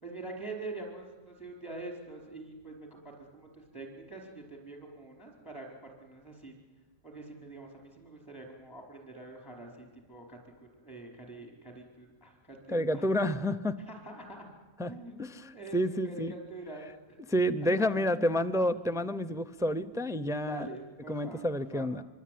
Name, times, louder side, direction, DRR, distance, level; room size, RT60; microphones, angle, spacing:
voice 1, 0.0-6.5 7.0-10.4 10.8-13.1 13.9-14.5 14.9-15.2 15.5-17.3 17.6-17.7 20.5-21.4 21.7-21.9, right 2 dB, 20° left, 1 dB, 4.9 m, -45 dB
voice 2, 12.7-13.8 14.8-14.9 15.2-16.3 17.3-20.7 21.1-22.0, equal, 5° right, 12 dB, 0.6 m, -29 dB
25.0 x 24.0 x 9.5 m, 1.2 s
omnidirectional pair, 1.1 m